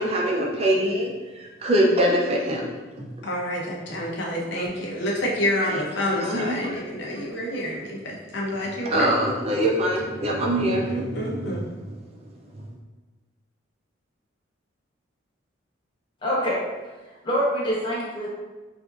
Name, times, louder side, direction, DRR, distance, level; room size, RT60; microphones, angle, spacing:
voice 1, 0.0-2.7 3.0-3.1 4.6-4.7 5.7-5.8 6.2-6.7 8.8-11.6, right 1 dB, 30° right, -1 dB, 0.5 m, -24 dB
voice 2, 3.2-9.1 10.9-11.7, left 1 dB, 65° left, -3 dB, 0.7 m, -28 dB
voice 3, 16.2-16.6 17.2-18.3, equal, 25° left, -6 dB, 1.0 m, -25 dB
4.9 x 2.5 x 2.4 m, 1.2 s
head